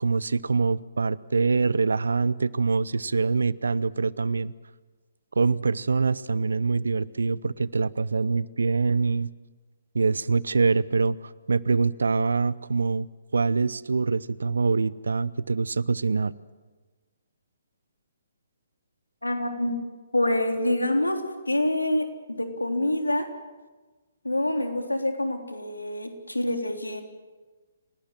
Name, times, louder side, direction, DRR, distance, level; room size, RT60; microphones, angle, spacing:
voice 1, 0.0-4.5 5.4-9.3 9.9-16.3, right 4 dB, 70° right, 21 dB, 0.8 m, -24 dB
voice 2, 19.2-19.8 20.1-21.2 21.5-22.1 22.4-23.3 24.2-27.0, left 1 dB, 85° left, 5 dB, 3.6 m, -26 dB
30.0 x 18.5 x 7.6 m, 1.3 s
figure-of-eight pair, 130°, 0 cm